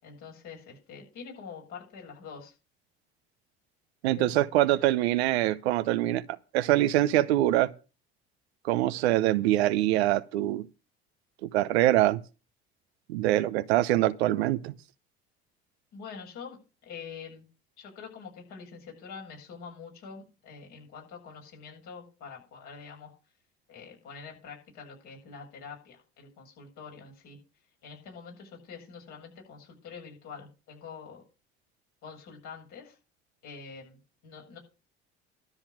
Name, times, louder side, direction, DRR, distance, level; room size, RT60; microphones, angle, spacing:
voice 1, 0.0-2.5 4.1-4.8 15.9-17.5 17.8-23.1 23.7-27.4 27.8-31.2 32.0-33.0 33.4-34.6, left 5 dB, 70° left, 7.9 m, -45 dB
voice 2, 4.0-6.2 6.5-7.7 8.6-10.6 11.4-12.2 13.1-14.7, right 15 dB, 80° right, 0.7 m, -24 dB
12.5 x 5.7 x 8.5 m
hypercardioid pair, 60°, 31 cm